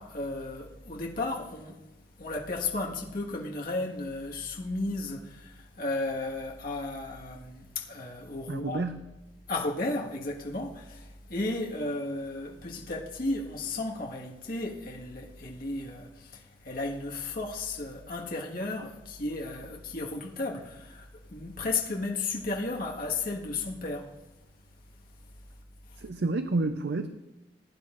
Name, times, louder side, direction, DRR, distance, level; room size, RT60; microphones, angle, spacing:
voice 1, 0.0-1.8 2.2-8.8 9.5-24.1 25.9-26.0, left 2 dB, 55° left, 1.7 m, -34 dB
voice 2, 8.5-9.1 26.0-27.1, right 2 dB, 65° right, 0.6 m, -29 dB
20.0 x 10.5 x 2.6 m
head